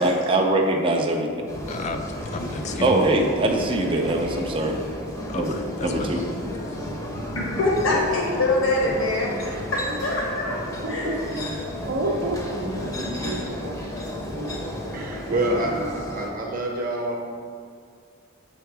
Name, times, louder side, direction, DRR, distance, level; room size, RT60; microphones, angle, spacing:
voice 1, 0.0-1.5 2.8-4.8 5.3-6.2, right 2 dB, 25° right, 1 dB, 0.5 m, -23 dB
sound 1, 1.5-16.3, equal, 15° left, 0.8 m, -32 dB
voice 2, 1.7-3.0 5.3-6.2, left 3 dB, 35° left, 6 dB, 0.4 m, -32 dB
voice 3, 7.3-10.6 10.9-11.1, left 2 dB, 65° left, -3 dB, 1.3 m, -24 dB
voice 4, 10.8-11.1 11.8-13.8, right 1 dB, 70° right, -5 dB, 0.7 m, -29 dB
voice 5, 14.9-17.3, right 1 dB, 40° right, 0 dB, 0.9 m, -27 dB
7.0 x 3.7 x 4.6 m, 2.2 s
head